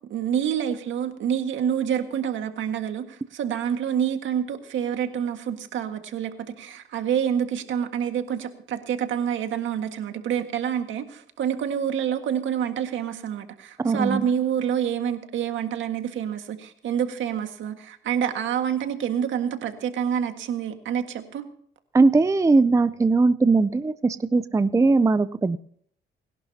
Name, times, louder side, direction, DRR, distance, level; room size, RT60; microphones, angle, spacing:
voice 1, 0.1-21.5, right 8 dB, 75° right, 7 dB, 1.8 m, -27 dB
voice 2, 13.8-14.2 21.9-25.6, right 3 dB, 15° right, 14 dB, 0.5 m, -20 dB
29.5 x 11.5 x 2.9 m, 0.63 s
cardioid pair, 90°, 20 cm